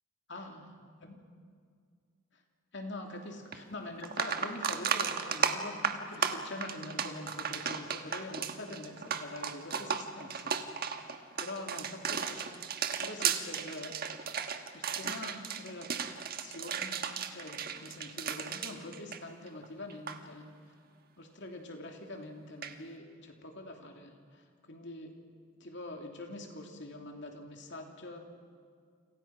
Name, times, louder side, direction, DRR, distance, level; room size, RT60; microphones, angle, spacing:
voice 1, 0.3-0.7 1.0-1.2 2.3-2.4 2.7-14.0 14.7-15.9 16.4-20.5 21.2-25.1 25.6-28.2, left 1 dB, 55° left, 3 dB, 3.0 m, -45 dB
sound 1, 3.5-3.6 4.0-19.6 19.9-20.2 22.6-22.7, right 6 dB, 45° right, 1.5 m, -34 dB
29.5 x 27.0 x 6.0 m, 2.1 s
head